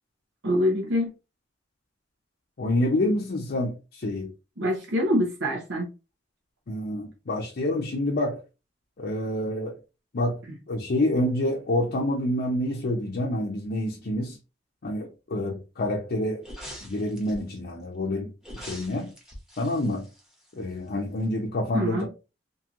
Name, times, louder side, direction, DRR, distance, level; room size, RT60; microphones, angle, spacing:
voice 1, 0.4-1.1 4.6-5.9 21.7-22.1, equal, 85° right, 0.8 m, -25 dB
voice 2, 2.6-4.3 6.7-8.4 9.0-9.8 10.1-10.4 10.7-14.4 14.8-16.4 16.8-18.3 18.6-19.1 19.6-20.0 20.6-22.1, left 1 dB, 60° left, 0.5 m, -27 dB
sound 1, 16.4-17.6 18.4-20.9 21.2-21.3, equal, 5° right, 0.9 m, -43 dB
2.9 x 2.6 x 2.4 m
head